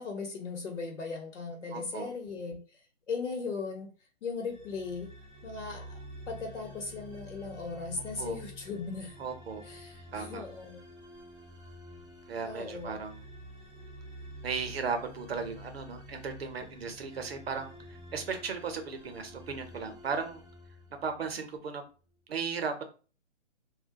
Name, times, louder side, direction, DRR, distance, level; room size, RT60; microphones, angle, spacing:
voice 1, 0.0-2.6 3.1-3.9 4.2-5.1 5.4-6.0 6.3-9.1 9.6-10.8 12.4-12.9, left 4 dB, 75° left, 1 dB, 0.9 m, -38 dB
voice 2, 1.7-2.1 7.9-8.4 9.2-9.6 10.1-10.4 12.3-13.2 14.4-20.4 21.0-21.8 22.3-22.8, right 5 dB, 55° right, 6 dB, 0.7 m, -36 dB
sound 1, 4.4-21.5, equal, ahead, 0.4 m, -49 dB
2.2 x 2.1 x 2.6 m, 0.36 s
hypercardioid pair, 170°, 36 cm